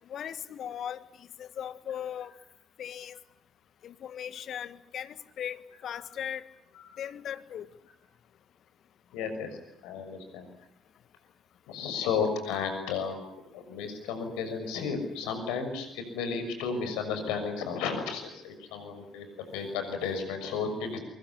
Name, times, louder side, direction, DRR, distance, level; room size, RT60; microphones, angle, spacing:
voice 1, 0.1-2.3 2.8-3.2 3.8-6.5 7.0-7.7, left 9 dB, 55° left, 14 dB, 1.6 m, -38 dB
voice 2, 9.1-9.5 9.8-10.5 11.7-13.2 13.5-19.3 19.5-21.0, left 5 dB, 70° left, 7 dB, 6.5 m, -33 dB
25.0 x 22.0 x 10.0 m, 0.76 s
hypercardioid pair, 50°, 0 cm